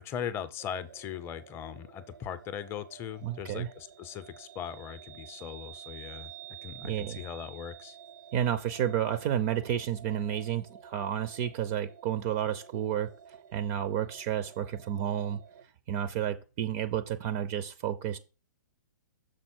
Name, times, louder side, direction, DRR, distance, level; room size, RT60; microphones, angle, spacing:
voice 1, 0.0-6.3 6.6-8.0, left 9 dB, 20° left, 0.6 m, -39 dB
sound 1, 0.6-15.6, right 10 dB, 80° right, 0.8 m, -51 dB
voice 2, 3.2-3.7 6.8-7.2 8.3-13.1 13.5-15.4 15.9-18.2, right 10 dB, 35° right, 0.5 m, -31 dB
6.4 x 4.1 x 6.1 m
hypercardioid pair, 135°, 10 cm